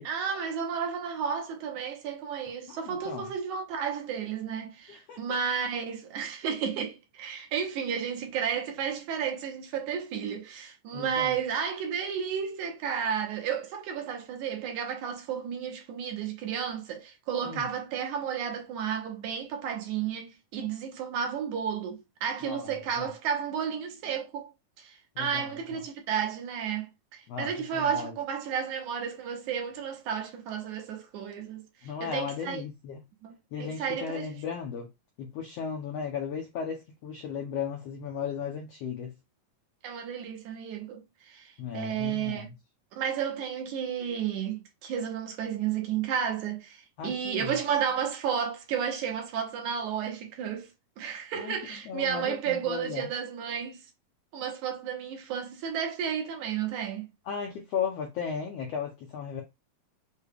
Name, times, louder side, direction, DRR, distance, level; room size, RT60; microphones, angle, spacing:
voice 1, 0.1-24.5 24.8-31.6 32.0-32.6 33.2-34.3 39.8-42.5 42.9-50.7 51.0-53.8 54.3-57.1, right 7 dB, 70° right, 2.2 m, -32 dB
voice 2, 2.7-3.3 4.9-5.2 10.9-11.4 17.4-17.6 22.4-23.1 25.1-25.8 27.3-28.2 31.8-33.0 33.5-34.9 35.2-39.1 41.6-42.5 47.0-47.5 51.3-51.5 51.8-53.1 57.3-59.4, left 7 dB, 80° left, 1.4 m, -36 dB
6.4 x 2.3 x 3.4 m
omnidirectional pair, 3.7 m